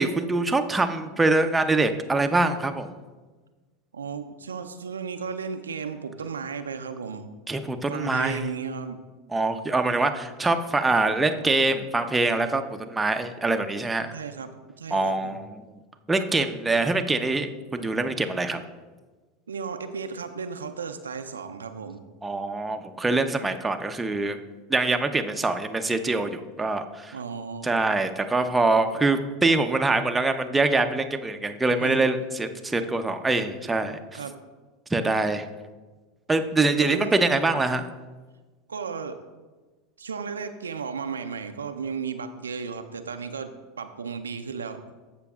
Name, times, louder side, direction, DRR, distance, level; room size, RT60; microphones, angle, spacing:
voice 1, 0.0-2.9 7.5-8.5 9.3-14.1 14.9-15.6 16.1-18.6 22.2-24.4 24.7-27.1 27.6-34.2 34.9-35.5 36.3-37.9, right 2 dB, 10° right, 6 dB, 0.7 m, -24 dB
voice 2, 3.9-7.3 7.9-9.0 14.1-15.4 19.5-22.0 27.1-27.7 31.8-32.0 34.1-34.4 36.6-37.2 38.7-39.2 40.0-44.8, right 5 dB, 85° right, 8 dB, 0.5 m, -34 dB
15.0 x 5.9 x 2.4 m, 1.3 s
hypercardioid pair, 85°, 0 cm